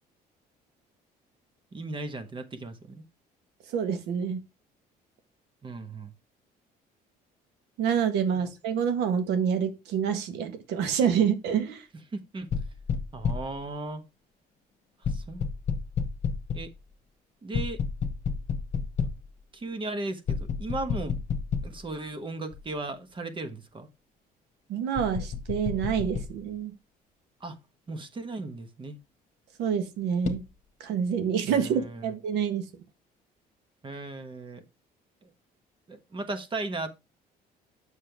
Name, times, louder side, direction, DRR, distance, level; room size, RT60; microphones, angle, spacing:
voice 1, 1.7-3.0 5.6-6.1 8.4-8.5 12.1-12.5 13.1-14.0 15.1-15.5 16.5-16.7 17.4-17.8 19.5-21.2 21.6-23.9 27.4-27.6 27.9-29.0 31.5-32.1 33.8-34.6 35.2-35.3 35.9-36.9, right 2 dB, 30° right, 1.2 m, -36 dB
voice 2, 3.7-4.4 7.8-11.8 24.7-26.7 29.6-30.4 30.8-32.6, right 7 dB, 85° right, 1.4 m, -27 dB
sound 1, 12.5-13.6 15.0-16.8 17.5-19.3 20.3-21.9 22.5-22.6 24.9-26.3 30.2-30.4, left 6 dB, 45° left, 1.3 m, -31 dB
7.5 x 6.4 x 3.4 m
cardioid pair, 110°, 17 cm